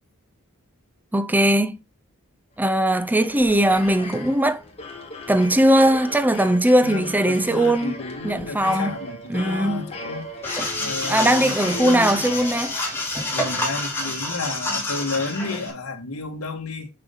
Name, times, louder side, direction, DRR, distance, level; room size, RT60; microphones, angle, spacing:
voice 1, 1.1-1.8 2.6-4.6 5.3-7.9 8.2-9.0 9.3-9.9 11.1-12.7, right 1 dB, 10° right, 0.5 m, -19 dB
sound 1, 2.7-13.2, left 2 dB, 30° left, 1.9 m, -37 dB
voice 2, 6.8-10.3 10.8-12.2 13.3-16.9, left 3 dB, 75° left, 1.7 m, -32 dB
sound 2, 10.4-15.7, left 2 dB, 10° left, 2.6 m, -28 dB
6.7 x 6.2 x 3.8 m
head